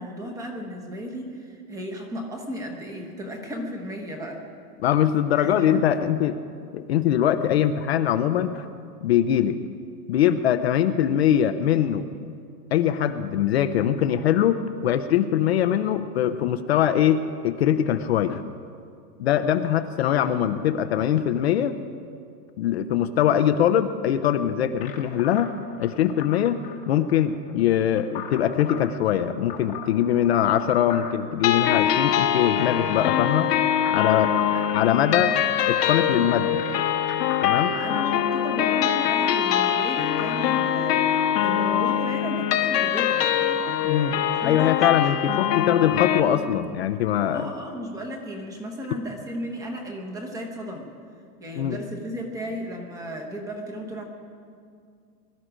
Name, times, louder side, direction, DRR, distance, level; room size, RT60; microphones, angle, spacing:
voice 1, 0.0-4.4 5.3-5.9 23.3-23.4 34.4-34.7 35.1-35.5 36.1-36.2 37.7-43.7 44.4-44.9 47.3-50.9 51.4-54.0, equal, 5° right, 2 dB, 1.0 m, -35 dB
voice 2, 4.8-6.4 6.7-8.7 9.0-9.6 10.1-12.1 12.7-18.4 19.2-21.8 22.6-25.5 25.8-26.6 26.9-33.5 33.9-34.3 34.7-35.3 35.7-36.6 37.4-37.7 43.8-44.2 44.4-47.4 51.6-51.8, left 10 dB, 45° left, 10 dB, 0.5 m, -22 dB
sound 1, 24.8-40.4, left 8 dB, 15° left, 1.0 m, -41 dB
sound 2, 31.4-46.2, left 10 dB, 80° left, 1.3 m, -23 dB
22.0 x 12.5 x 5.0 m, 2.3 s
supercardioid pair, 175°, 47 cm